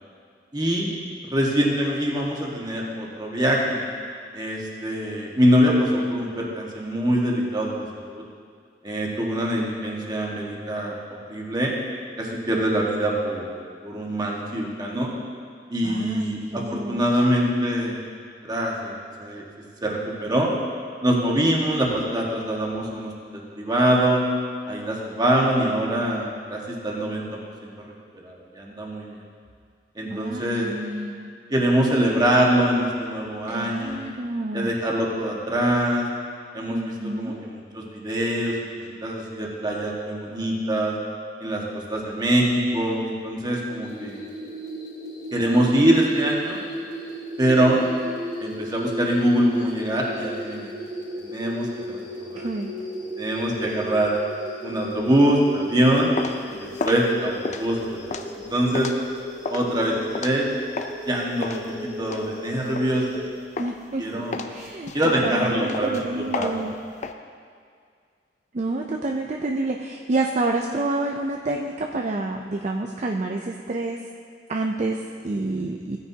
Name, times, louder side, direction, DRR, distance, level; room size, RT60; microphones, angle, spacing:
voice 1, 0.5-0.9 1.2-3.8 4.3-8.2 8.8-11.7 12.2-13.5 13.8-15.1 15.7-18.0 18.4-18.9 19.2-19.5 19.8-20.5 21.0-24.3 24.7-27.2 27.6-27.7 28.1-29.1 29.9-30.7 31.5-34.0 34.5-36.1 36.5-38.6 39.0-40.9 41.4-44.3 45.3-46.6 47.4-47.8 48.4-50.7 51.2-52.5 53.2-54.1 54.6-56.1 56.5-58.9 59.5-60.5 61.0-63.0 64.0-64.4 64.9-66.5, right 1 dB, 25° right, -2 dB, 1.5 m, -24 dB
voice 2, 15.8-17.1 30.1-31.3 33.5-34.7 36.7-37.4 52.4-52.7 63.6-66.8 68.5-74.0 74.5-76.0, right 2 dB, 40° right, 1 dB, 0.5 m, -28 dB
sound 1, 43.8-63.3, equal, 25° left, 3.1 m, -36 dB
sound 2, 55.8-61.0 61.4-63.2 63.6-63.9 64.3-67.1, left 4 dB, 40° left, 0.5 m, -33 dB
16.0 x 9.5 x 2.8 m, 2.1 s
head